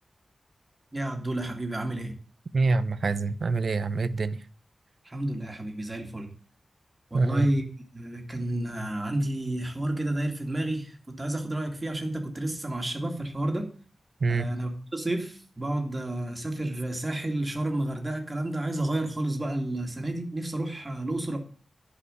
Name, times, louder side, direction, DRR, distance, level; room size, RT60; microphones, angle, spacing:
voice 1, 0.9-2.1 5.0-6.3 7.1-7.6 7.9-13.7 14.3-21.4, right 1 dB, 25° right, 2.3 m, -30 dB
voice 2, 2.5-4.4 7.1-7.5 14.2-14.5, right 3 dB, 60° right, 0.7 m, -25 dB
11.5 x 5.0 x 7.8 m
wide cardioid pair, 120°, 0 cm